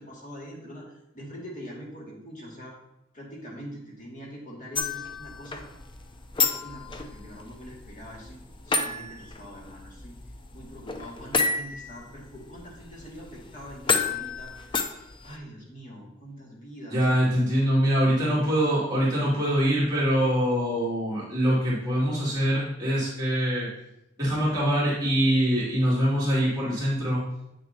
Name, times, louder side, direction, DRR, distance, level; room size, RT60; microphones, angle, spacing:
voice 1, 0.0-2.8 3.1-5.7 6.4-10.2 10.5-14.8 15.2-17.1, equal, 40° left, -3 dB, 2.0 m, -43 dB
sound 1, 4.7-15.4, left 4 dB, 25° left, 0.5 m, -31 dB
voice 2, 16.9-23.7 24.2-27.2, equal, 20° right, -8 dB, 2.3 m, -24 dB
8.0 x 6.5 x 2.7 m, 0.86 s
head